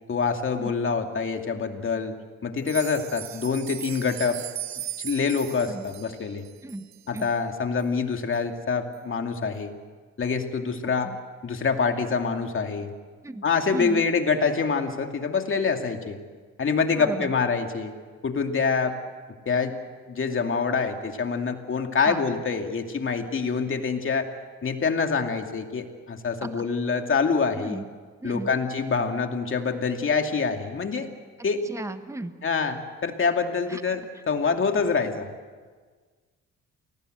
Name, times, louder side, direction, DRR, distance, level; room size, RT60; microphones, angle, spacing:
voice 1, 0.1-2.1 2.4-4.4 5.0-6.4 7.1-9.7 10.2-11.1 11.4-12.9 13.4-16.2 16.6-17.9 18.2-19.0 19.5-19.7 20.1-24.3 24.6-27.8 28.2-31.1 31.4-31.6 32.4-32.8 33.0-34.0 34.3-35.3, left 5 dB, 45° left, 5 dB, 2.5 m, -26 dB
sound 1, 2.6-7.3 7.8-7.9 8.3-8.4 8.9-9.0, right 12 dB, 65° right, 1.2 m, -38 dB
voice 2, 13.7-14.1 16.9-17.3 22.0-22.2 26.4-26.7 27.5-27.9 28.2-28.5 31.6-32.3 33.7-34.0, right 2 dB, 10° right, 9 dB, 1.3 m, -35 dB
28.5 x 19.0 x 7.9 m, 1.5 s
cardioid pair, 90°, 30 cm